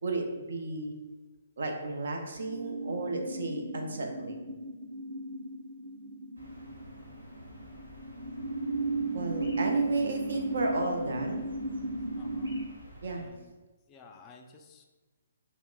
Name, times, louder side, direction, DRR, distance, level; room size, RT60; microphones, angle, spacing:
voice 1, 0.0-0.9 1.6-4.5 9.1-11.5 13.0-13.2, right 2 dB, 70° right, 2 dB, 0.6 m, -33 dB
sound 1, 2.3-12.6, right 2 dB, 35° right, 1.5 m, -35 dB
sound 2, 6.4-13.3, equal, 90° right, 1.1 m, -51 dB
voice 2, 12.2-12.6 13.1-13.5 13.9-14.8, left 4 dB, 20° left, 3 dB, 0.3 m, -53 dB
5.6 x 2.1 x 2.3 m, 1.2 s
hypercardioid pair, 140°, 0 cm